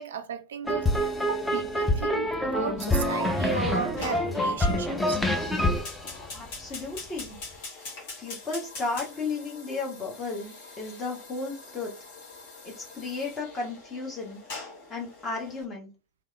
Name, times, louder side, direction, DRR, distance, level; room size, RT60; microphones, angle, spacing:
voice 1, 0.0-5.2, right 7 dB, 65° right, 0.3 m, -35 dB
sound 1, 0.7-7.0, left 1 dB, 5° left, 0.5 m, -26 dB
Fire, 4.0-15.6, left 3 dB, 50° left, 1.2 m, -44 dB
voice 2, 6.3-7.4 8.2-11.9 12.6-15.9, left 3 dB, 25° left, 0.9 m, -34 dB
3.2 x 2.4 x 2.3 m
figure-of-eight pair, 90°, 0 cm